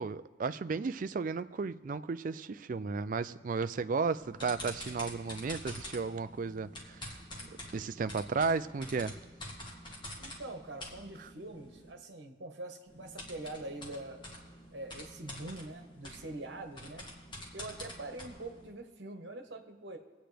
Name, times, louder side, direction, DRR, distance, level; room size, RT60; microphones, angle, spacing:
voice 1, 0.0-7.2 7.7-9.2 11.2-11.3, right 4 dB, 45° right, 0.4 m, -34 dB
sound 1, 4.1-11.9 12.9-18.7, left 1 dB, 25° left, 2.0 m, -47 dB
voice 2, 10.2-14.2 14.7-17.1 17.5-20.0, right 2 dB, 70° right, 1.3 m, -44 dB
25.0 x 9.0 x 3.4 m
head